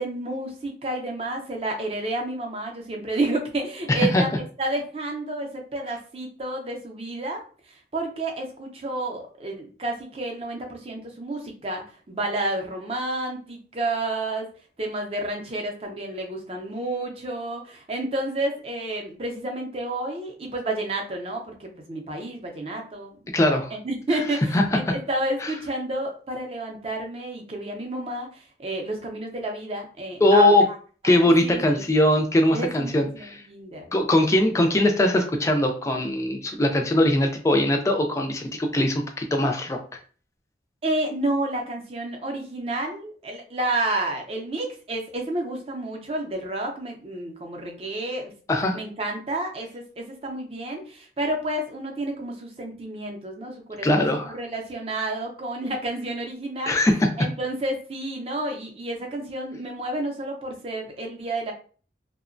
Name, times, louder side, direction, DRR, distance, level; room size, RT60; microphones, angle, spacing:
voice 1, 0.0-14.5 14.8-23.2 23.7-30.6 31.0-32.1 32.5-33.9 40.8-48.3 48.7-56.8 57.2-61.5, right 2 dB, 35° right, 2 dB, 0.5 m, -30 dB
voice 2, 3.9-4.2 23.3-23.7 24.5-24.6 25.4-25.5 30.2-30.6 31.0-33.4 33.9-39.8 48.5-48.8 53.8-54.4 56.7-57.1, left 1 dB, 15° left, 3 dB, 0.3 m, -21 dB
2.8 x 2.1 x 2.5 m, 0.40 s
head